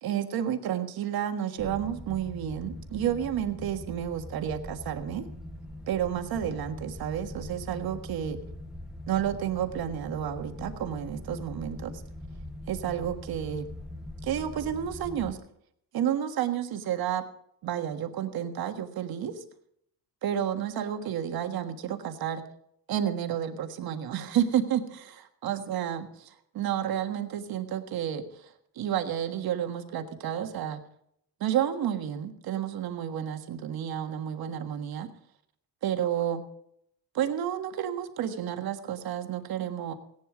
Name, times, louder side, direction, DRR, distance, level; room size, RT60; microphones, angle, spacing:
voice 1, 0.0-5.2 5.9-8.4 9.1-11.9 12.7-13.7 14.2-15.4 15.9-17.2 17.6-19.4 20.2-22.4 22.9-30.8 31.4-35.1 35.8-36.4 37.1-39.9, right 10 dB, 60° right, 7 dB, 1.6 m, -31 dB
sound 1, 1.6-15.3, left 1 dB, ahead, 0.8 m, -42 dB
17.0 x 11.0 x 5.0 m, 0.72 s
cardioid pair, 150°, 40 cm